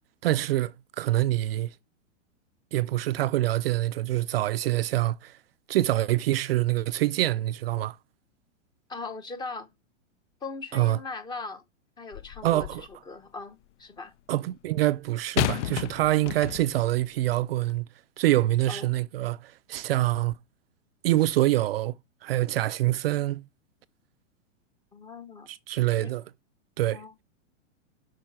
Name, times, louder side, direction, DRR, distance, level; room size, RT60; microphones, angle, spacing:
voice 1, 0.2-1.7 2.7-5.4 5.7-8.0 10.7-11.0 12.4-12.9 14.3-17.9 18.2-20.4 21.0-21.9 22.2-23.4 25.5-26.2 26.8-27.0, right 15 dB, 50° right, 0.4 m, -25 dB
voice 2, 8.9-9.7 10.4-11.6 12.0-14.1 18.7-19.0 24.9-25.5 26.0-26.1 26.9-27.1, left 3 dB, 10° left, 0.7 m, -39 dB
sound 1, 12.1-12.9 15.4-16.9 17.7-17.8, left 13 dB, 65° left, 0.5 m, -31 dB
7.4 x 5.6 x 5.8 m
hypercardioid pair, 150°, 38 cm